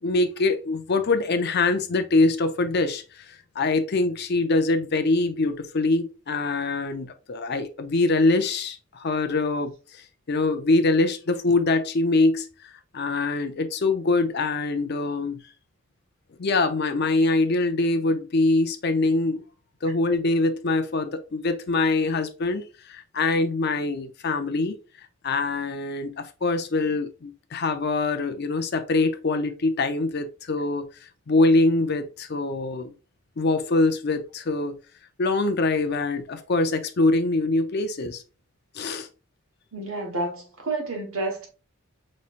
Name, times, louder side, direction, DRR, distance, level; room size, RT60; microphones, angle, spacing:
voice 1, 0.0-15.4 16.4-19.4 19.8-24.8 25.2-30.9 31.3-32.9 33.4-34.8 35.2-38.2 38.7-39.1, left 3 dB, 50° left, 0.5 m, -24 dB
voice 2, 39.7-41.5, right 2 dB, 75° right, 1.4 m, -30 dB
5.5 x 3.2 x 2.5 m
head